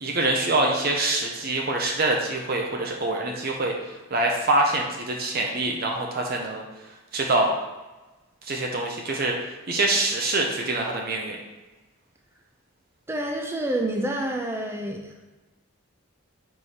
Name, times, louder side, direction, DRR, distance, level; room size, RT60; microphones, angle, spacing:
voice 1, 0.0-6.6 7.1-7.5 8.4-9.4 9.7-11.4, right 2 dB, 45° right, 1 dB, 0.7 m, -25 dB
voice 2, 13.1-15.2, right 1 dB, 10° right, 2 dB, 0.5 m, -28 dB
5.0 x 4.5 x 4.3 m, 1.1 s
head